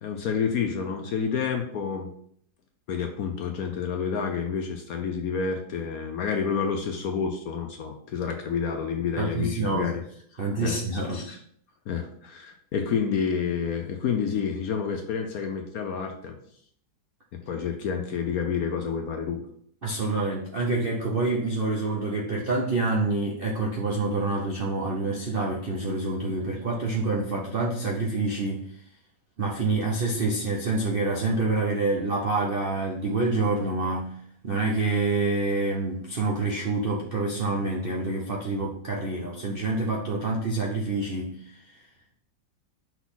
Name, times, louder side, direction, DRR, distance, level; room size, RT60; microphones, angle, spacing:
voice 1, 0.0-2.1 2.9-10.0 10.3-10.8 11.1-11.4 11.9-16.4 17.3-19.5, left 6 dB, 65° left, 4 dB, 1.0 m, -29 dB
voice 2, 8.9-9.9 10.4-11.2 19.8-28.8 29.4-34.1 34.4-41.7, right 3 dB, 55° right, -2 dB, 0.6 m, -27 dB
5.9 x 4.0 x 4.0 m, 0.63 s
omnidirectional pair, 2.0 m